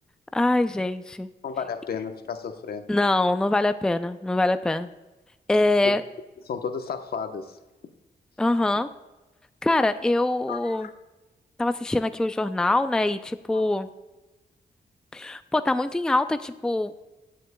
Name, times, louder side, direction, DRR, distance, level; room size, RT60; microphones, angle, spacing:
voice 1, 0.3-1.3 2.9-4.9 5.5-6.0 8.4-8.9 9.6-10.9 11.6-13.9 15.1-16.9, left 2 dB, 5° left, 10 dB, 0.4 m, -24 dB
voice 2, 1.4-2.9 5.8-6.0 6.5-7.6 10.5-10.9 13.5-13.6, left 6 dB, 70° left, 7 dB, 1.0 m, -32 dB
18.5 x 7.6 x 2.2 m, 1.1 s
cardioid pair, 100°, 17 cm